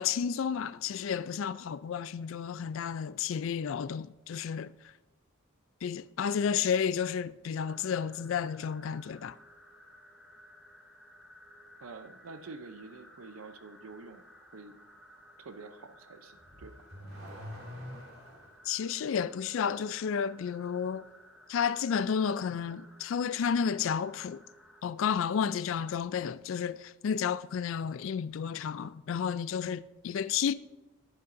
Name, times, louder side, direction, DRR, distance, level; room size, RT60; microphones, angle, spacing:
voice 1, 0.0-4.7 5.8-9.4 18.7-21.0 21.5-24.4 24.8-30.5, left 7 dB, 70° left, 0.3 m, -31 dB
sound 1, 7.6-24.8, equal, ahead, 0.7 m, -57 dB
voice 2, 11.8-14.3 14.5-14.8 15.4-16.9, right 3 dB, 85° right, 0.6 m, -47 dB
Car / Accelerating revving vroom, 16.4-18.6, equal, 70° right, 3.8 m, -45 dB
11.0 x 10.5 x 2.6 m
head